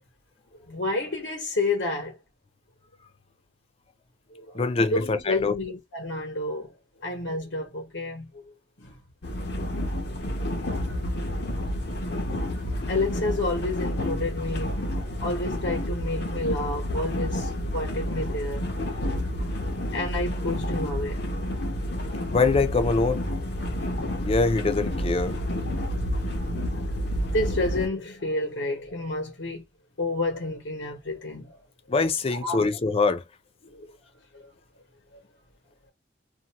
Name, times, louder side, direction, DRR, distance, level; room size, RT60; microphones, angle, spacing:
voice 1, 0.7-2.2 4.3-4.6 4.9-6.7 7.0-9.0 10.5-10.8 11.5-11.8 12.9-18.6 19.9-21.3 21.6-21.7 26.9-29.6 30.0-31.6 32.3-32.7 33.6-33.9 34.3-34.5, left 2 dB, 85° left, 1.1 m, -30 dB
voice 2, 4.5-5.5 22.3-23.3 24.2-25.4 31.9-33.2, left 3 dB, 30° left, 0.4 m, -24 dB
sound 1, 9.2-27.9, equal, 65° left, 0.7 m, -29 dB
2.6 x 2.2 x 2.8 m
head